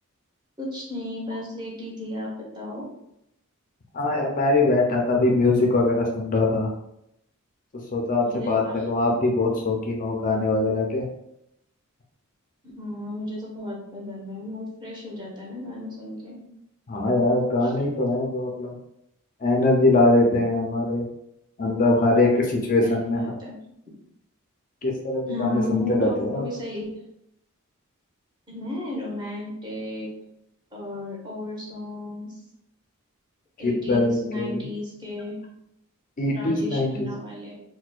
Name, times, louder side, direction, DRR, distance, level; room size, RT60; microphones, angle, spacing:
voice 1, 0.6-2.9 8.2-8.8 12.8-16.4 17.6-17.7 22.8-23.5 25.2-27.0 28.5-30.1 30.7-32.3 33.6-35.4 36.3-37.6, left 1 dB, 20° right, -4 dB, 0.9 m, -34 dB
voice 2, 3.9-6.7 7.7-11.0 16.9-18.8 19.4-21.0 21.6-23.4 24.8-26.5 33.6-34.7 36.2-37.1, left 2 dB, 40° left, 0 dB, 0.5 m, -22 dB
4.2 x 2.2 x 2.3 m, 0.80 s
head